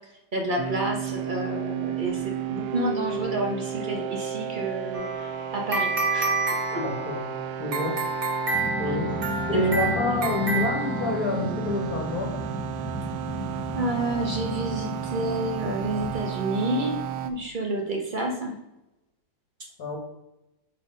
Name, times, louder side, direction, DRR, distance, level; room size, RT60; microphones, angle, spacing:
voice 1, 0.3-6.4 6.7-6.8 8.5-8.9 9.5-9.6 13.8-17.0 17.2-18.5, right 1 dB, 55° right, 1 dB, 0.5 m, -30 dB
sound 1, 0.6-17.3, right 9 dB, 70° right, 1.0 m, -33 dB
sound 2, 4.9-11.5, right 3 dB, 35° right, 1.1 m, -29 dB
voice 2, 6.8-7.2 7.5-7.9 8.8-9.2 9.5-12.3 19.8-20.0, left 2 dB, 55° left, 0 dB, 1.7 m, -27 dB
Growling, 8.5-16.2, left 2 dB, 25° left, 0.3 m, -35 dB
5.7 x 4.4 x 4.9 m, 0.90 s
omnidirectional pair, 2.0 m